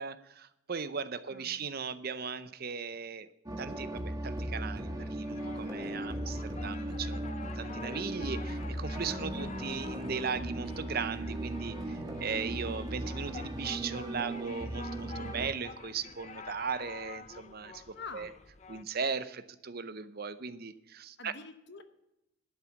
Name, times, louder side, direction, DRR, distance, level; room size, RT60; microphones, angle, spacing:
voice 1, 0.0-3.3 3.6-7.2 7.6-18.3 18.7-21.3, right 5 dB, 45° right, 13 dB, 0.6 m, -38 dB
voice 2, 1.3-1.7 9.2-9.5 17.9-18.3 21.2-21.8, left 4 dB, 50° left, 10 dB, 1.0 m, -46 dB
sound 1, 3.5-15.5, right 1 dB, 20° right, 1.3 m, -37 dB
sound 2, 5.0-18.8, left 5 dB, 30° left, 0.5 m, -49 dB
12.0 x 7.5 x 7.0 m, 0.89 s
head